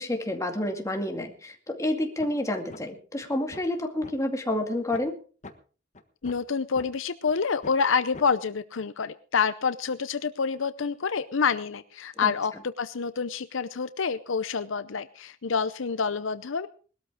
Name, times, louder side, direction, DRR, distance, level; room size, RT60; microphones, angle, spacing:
voice 1, 0.0-5.2 12.2-12.3, left 1 dB, 15° left, 3 dB, 2.2 m, -29 dB
sound 1, 2.2-2.4 2.7-2.8 3.2-4.1 4.5-4.6 4.9-5.1 5.4-5.5 5.9-6.9 7.3-7.4 7.6-7.8 8.1-8.3, left 2 dB, 35° left, 1.3 m, -43 dB
voice 2, 6.2-16.7, left 5 dB, 70° left, 13 dB, 0.7 m, -27 dB
20.0 x 13.0 x 3.7 m, 0.39 s
head